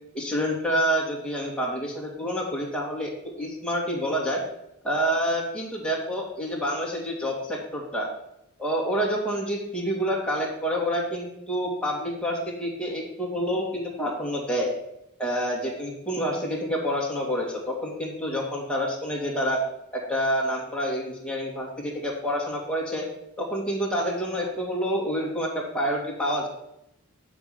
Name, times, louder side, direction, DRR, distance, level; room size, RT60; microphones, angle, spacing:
voice 1, 0.1-3.1 3.4-4.4 4.8-8.1 8.6-14.7 15.2-19.6 19.9-23.1 23.4-26.5, equal, 5° left, -3 dB, 2.4 m, -28 dB
7.1 x 6.1 x 7.3 m, 0.81 s
head